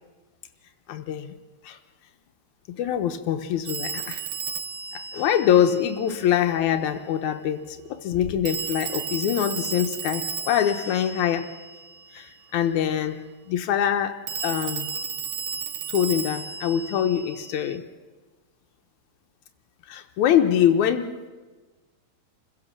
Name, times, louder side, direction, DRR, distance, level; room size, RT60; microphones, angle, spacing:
voice 1, 0.9-1.4 1.6-1.8 2.8-4.2 4.9-11.5 12.1-13.2 13.5-14.9 15.9-17.9 19.9-21.3, left 9 dB, 85° left, 6 dB, 2.3 m, -24 dB
Telephone, 3.7-6.3 8.5-12.1 14.3-17.8, right 7 dB, 65° right, 1.3 m, -34 dB
26.5 x 16.0 x 7.5 m, 1.3 s
omnidirectional pair, 3.4 m